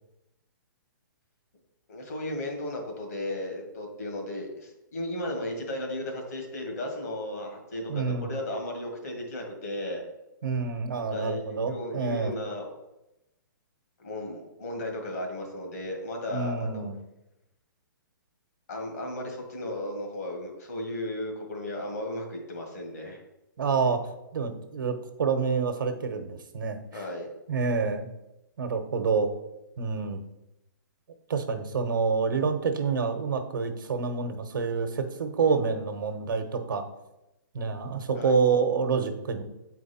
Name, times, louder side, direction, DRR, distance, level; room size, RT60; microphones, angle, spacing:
voice 1, 1.9-10.0 11.1-12.7 14.0-16.8 18.7-23.2 26.9-27.3 38.1-38.4, left 1 dB, 45° left, 2 dB, 1.8 m, -35 dB
voice 2, 7.9-8.3 10.4-12.3 16.3-17.0 23.6-24.0 24.3-26.8 27.5-28.1 28.6-29.3 29.8-30.2 31.3-36.8 37.5-39.4, right 5 dB, 70° right, 7 dB, 1.1 m, -27 dB
8.5 x 4.6 x 4.3 m, 0.93 s
hypercardioid pair, 175°, 11 cm